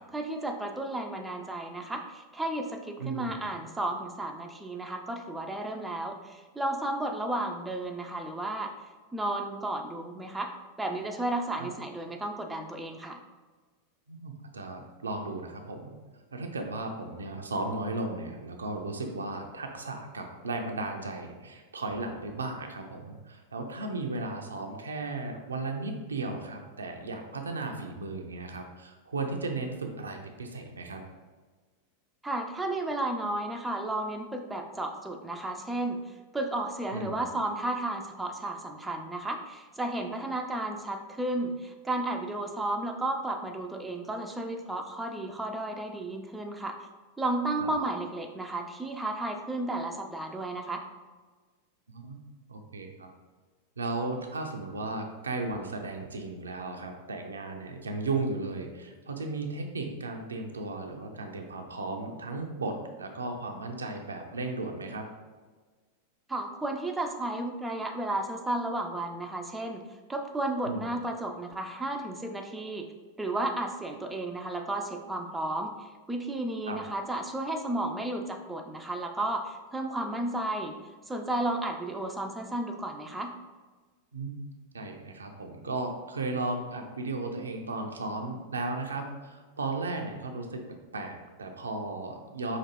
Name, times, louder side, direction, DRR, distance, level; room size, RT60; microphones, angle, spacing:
voice 1, 0.1-8.7 9.1-13.2 32.2-36.0 36.3-46.8 47.2-50.8 66.3-72.9 73.2-80.7 81.1-83.3, right 2 dB, 10° right, 3 dB, 0.4 m, -33 dB
voice 2, 3.0-3.4 11.6-11.7 14.1-15.9 16.3-31.0 36.9-37.2 47.6-47.7 51.9-52.2 52.5-53.1 53.8-65.0 70.6-70.9 76.7-76.8 84.1-84.4 84.7-90.6 90.9-92.6, right 2 dB, 75° right, 4 dB, 0.4 m, -35 dB
5.0 x 2.6 x 2.9 m, 1.4 s
figure-of-eight pair, 90°, 0 cm